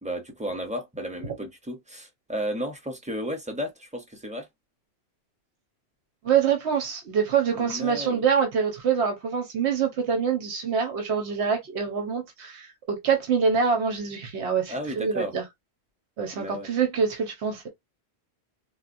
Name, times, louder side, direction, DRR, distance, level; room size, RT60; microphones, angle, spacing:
voice 1, 0.0-4.5 7.5-8.2 14.7-15.3 16.3-16.7, equal, 10° right, 0.6 m, -33 dB
voice 2, 6.2-15.4 16.2-17.7, right 6 dB, 90° right, 1.1 m, -25 dB
4.1 x 2.1 x 2.4 m
omnidirectional pair, 1.1 m